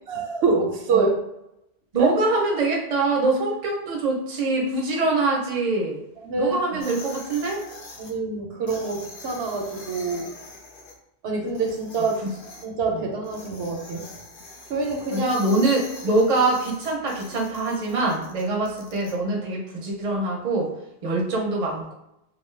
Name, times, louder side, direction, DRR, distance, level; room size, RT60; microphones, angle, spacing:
voice 1, 0.1-1.1 2.0-2.1 6.2-6.8 8.0-10.3 11.2-12.2 12.6-14.1 14.7-15.4, right 4 dB, 80° right, 1 dB, 0.8 m, -26 dB
voice 2, 1.9-6.0 6.4-7.6 12.2-12.3 12.9-13.1 15.1-20.7 21.0-21.9, right 2 dB, 45° right, -1 dB, 0.6 m, -24 dB
sound 1, 6.8-8.1 8.7-10.9 11.5-12.6 13.2-19.1, left 3 dB, 60° left, 0.7 m, -43 dB
2.6 x 2.2 x 3.1 m, 0.83 s
omnidirectional pair, 1.0 m